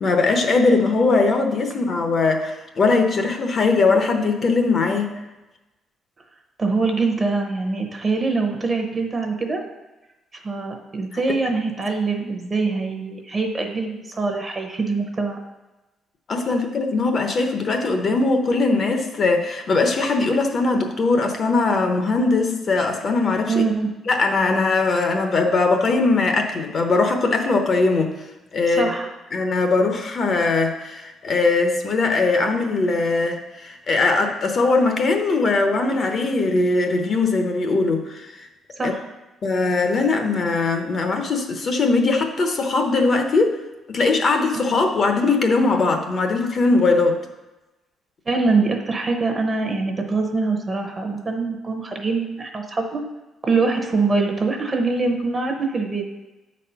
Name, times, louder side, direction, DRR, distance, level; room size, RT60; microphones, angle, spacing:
voice 1, 0.0-5.2 11.1-11.2 16.3-23.6 24.1-28.1 28.5-28.9 29.3-38.5 38.8-38.9 39.4-43.6 43.9-47.2, left 3 dB, 40° left, 5 dB, 0.8 m, -20 dB
voice 2, 6.6-9.6 10.3-15.4 23.5-23.9 28.7-29.1 38.8-39.0 44.5-44.6 48.3-53.0 53.4-56.0, right 3 dB, 25° right, 3 dB, 0.8 m, -23 dB
8.1 x 4.2 x 5.6 m, 1.1 s
cardioid pair, 150°, 0 cm